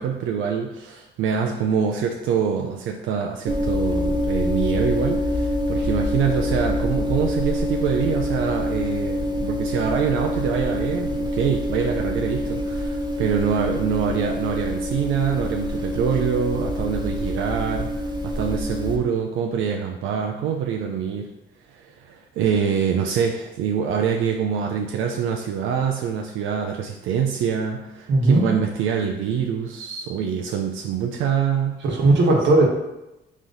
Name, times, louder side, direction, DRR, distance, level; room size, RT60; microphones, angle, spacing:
voice 1, 0.0-17.9 18.2-21.3 21.7-31.8, right 7 dB, 85° right, 1 dB, 0.4 m, -25 dB
sound 1, 3.5-19.0, left 1 dB, 20° right, 0.6 m, -26 dB
voice 2, 28.1-28.4 31.8-32.7, right 2 dB, 65° right, -1 dB, 1.1 m, -17 dB
3.9 x 3.1 x 3.9 m, 0.95 s
cardioid pair, 90°, 20 cm